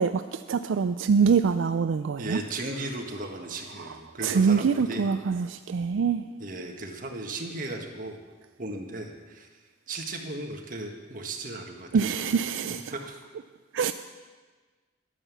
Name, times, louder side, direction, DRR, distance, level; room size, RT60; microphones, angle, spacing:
voice 1, 0.0-2.4 3.8-6.3 11.9-12.9 13.7-13.9, right 6 dB, 85° right, 10 dB, 0.4 m, -25 dB
voice 2, 2.2-5.1 6.4-8.2 8.6-9.5 9.9-12.2 12.9-13.2, right 2 dB, 45° right, 2 dB, 1.5 m, -36 dB
11.0 x 9.8 x 7.1 m, 1.4 s
head